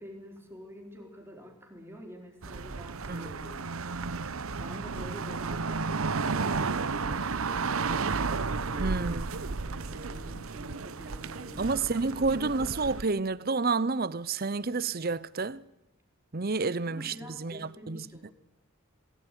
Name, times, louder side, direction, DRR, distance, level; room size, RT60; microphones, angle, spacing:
voice 1, 0.0-3.7 4.6-11.8 12.2-12.5 16.6-18.3, equal, 10° right, 4.2 m, -48 dB
sound 1, 2.4-13.0, right 4 dB, 85° right, 0.9 m, -33 dB
voice 2, 8.8-9.3 11.6-15.6 16.3-18.0, right 4 dB, 45° right, 0.8 m, -30 dB
21.5 x 18.0 x 10.0 m
head